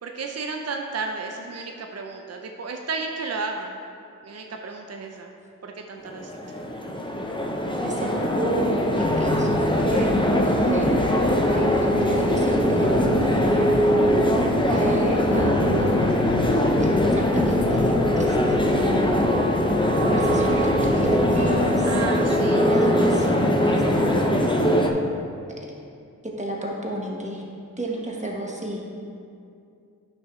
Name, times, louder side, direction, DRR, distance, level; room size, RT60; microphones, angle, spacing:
voice 1, 0.0-3.8 4.2-5.3 5.6-6.3 21.8-22.7, right 4 dB, 45° right, 2 dB, 0.6 m, -33 dB
sound 1, 6.1-24.9, equal, 15° left, 0.8 m, -21 dB
voice 2, 7.8-10.1 10.4-11.0 11.4-13.8 14.7-16.0 16.8-17.9 18.2-19.3 20.0-22.0 22.5-24.4 26.2-27.4 27.8-28.9, right 1 dB, 20° right, -2 dB, 1.5 m, -31 dB
sound 2, 9.0-21.8, left 4 dB, 80° left, 0.6 m, -33 dB
9.1 x 5.9 x 3.2 m, 2.5 s
cardioid pair, 40°, 35 cm